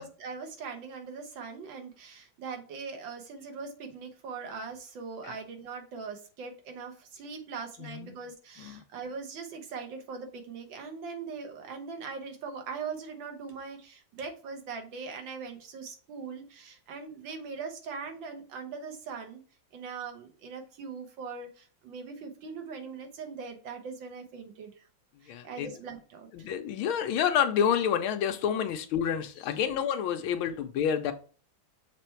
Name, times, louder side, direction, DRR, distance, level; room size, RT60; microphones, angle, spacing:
voice 1, 0.0-19.4 19.7-24.9 25.2-26.3, right 5 dB, 70° right, 5 dB, 1.8 m, -41 dB
voice 2, 7.8-8.1 8.6-8.8 25.3-25.7 26.3-31.1, left 8 dB, 85° left, 7 dB, 1.5 m, -29 dB
6.8 x 3.3 x 4.4 m, 0.39 s
omnidirectional pair, 2.2 m